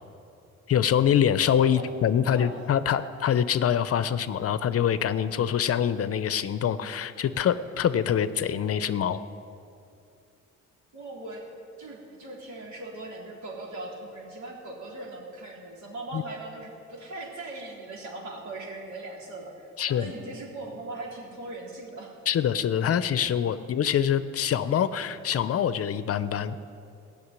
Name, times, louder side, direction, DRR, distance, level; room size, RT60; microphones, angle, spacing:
voice 1, 0.7-9.2 16.1-16.2 19.8-20.1 22.3-26.6, left 9 dB, 50° left, 13 dB, 0.6 m, -25 dB
voice 2, 2.2-2.6 10.9-11.5 11.8-22.1, right 2 dB, 70° right, -3 dB, 3.8 m, -40 dB
15.5 x 6.7 x 9.7 m, 2.6 s
cardioid pair, 90°, 30 cm